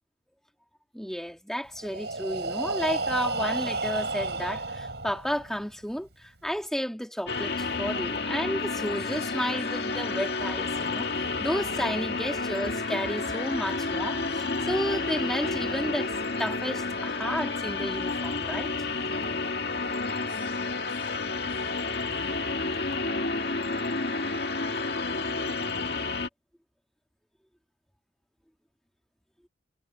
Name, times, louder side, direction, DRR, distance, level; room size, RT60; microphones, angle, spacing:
voice 1, 0.9-16.1 16.4-18.7, equal, 5° left, 2.2 m, -32 dB
Breathing, 1.8-5.6, right 3 dB, 70° right, 6.9 m, -31 dB
sound 1, 7.3-26.3, left 3 dB, 60° left, 2.0 m, -30 dB
head